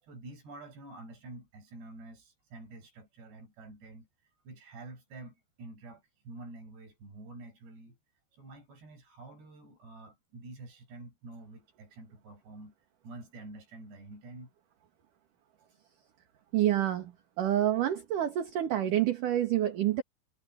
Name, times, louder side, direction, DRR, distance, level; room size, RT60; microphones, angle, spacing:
voice 1, 0.0-4.1 4.4-8.0 8.3-12.7 13.0-14.5, right 2 dB, 75° right, 9.3 m, -48 dB
voice 2, 16.5-17.1 17.4-20.0, right 12 dB, 55° right, 3.1 m, -27 dB
omnidirectional pair, 4.9 m